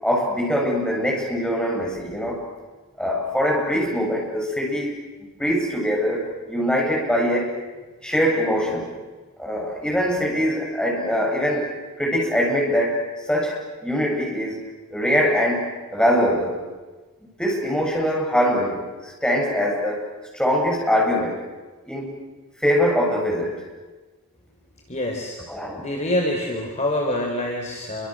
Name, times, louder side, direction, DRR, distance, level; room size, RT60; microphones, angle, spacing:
voice 1, 0.0-2.4 3.0-4.9 5.2-7.6 8.0-8.9 9.4-11.7 12.0-14.6 14.9-16.6 17.4-20.1 20.3-21.4 21.8-22.2 22.6-23.6 25.5-25.8, equal, 5° left, -2 dB, 7.8 m, -23 dB
voice 2, 24.9-25.4 25.8-28.1, left 1 dB, 30° left, 1 dB, 4.2 m, -25 dB
29.0 x 25.0 x 7.8 m, 1.3 s
head